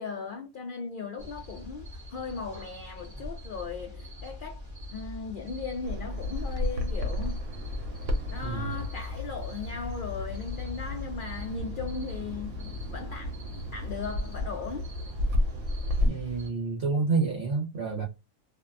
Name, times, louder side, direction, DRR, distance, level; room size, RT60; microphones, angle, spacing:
voice 1, 0.0-4.6 4.9-7.4 8.3-13.4 13.7-14.9, left 5 dB, 80° left, 0.4 m, -37 dB
sound 1, 1.2-16.5, left 4 dB, 25° right, 0.8 m, -41 dB
Bird vocalization bird call bird song, 5.8-16.1, left 1 dB, 85° right, 1.1 m, -33 dB
voice 2, 8.4-8.8 16.1-18.0, right 4 dB, 55° right, 0.9 m, -29 dB
2.6 x 2.2 x 2.3 m
omnidirectional pair, 1.4 m